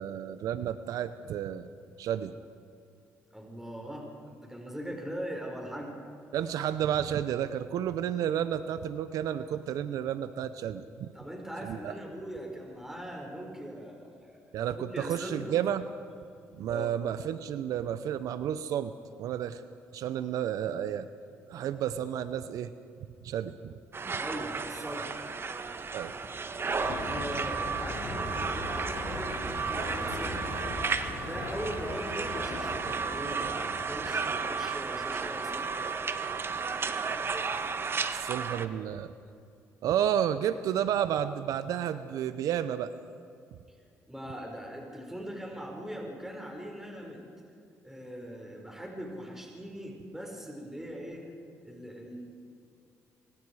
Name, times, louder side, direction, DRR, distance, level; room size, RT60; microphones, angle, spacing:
voice 1, 0.0-1.7 2.0-2.4 6.3-11.1 11.6-11.9 14.5-15.9 16.5-19.6 19.9-21.1 21.5-22.7 23.2-23.7 25.9-26.1 38.1-39.1 39.8-42.9, right 10 dB, 75° right, 12 dB, 0.8 m, -31 dB
voice 2, 3.3-6.0 11.1-15.6 16.7-16.9 24.2-25.1 27.0-30.6 31.2-35.7 44.1-47.2 47.8-51.3 51.6-52.2, equal, 5° right, 0 dB, 5.6 m, -40 dB
sound 1, 23.9-38.7, right 5 dB, 40° right, 1.5 m, -33 dB
sound 2, 26.8-34.3, left 2 dB, 70° left, 5.9 m, -39 dB
26.5 x 24.5 x 4.9 m, 2.5 s
supercardioid pair, 60°, 6 cm